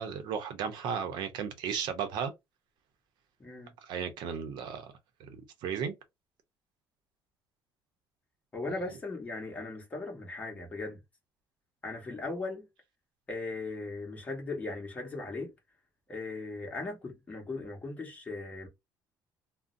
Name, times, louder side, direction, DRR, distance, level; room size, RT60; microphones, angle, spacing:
voice 1, 0.0-2.3 3.8-4.9 5.2-5.9, right 7 dB, 65° right, 0.6 m, -35 dB
voice 2, 3.4-3.7 8.5-11.0 11.8-12.6 13.3-15.5 16.1-18.7, left 3 dB, 20° left, 1.0 m, -38 dB
2.5 x 2.0 x 3.8 m
cardioid pair, 165°, 8 cm